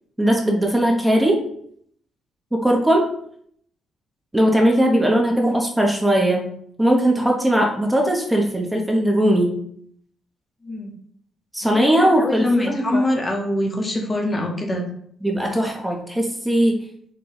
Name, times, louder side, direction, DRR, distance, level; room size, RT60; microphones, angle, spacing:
voice 1, 0.2-1.4 2.5-3.1 4.3-6.5 6.8-9.6 11.5-13.0 15.2-16.8, right 1 dB, 10° right, 0 dB, 0.7 m, -19 dB
voice 2, 10.6-10.9 11.6-14.8, left 1 dB, 25° left, 2 dB, 0.8 m, -24 dB
4.3 x 2.2 x 3.9 m, 0.65 s
cardioid pair, 90°, 0 cm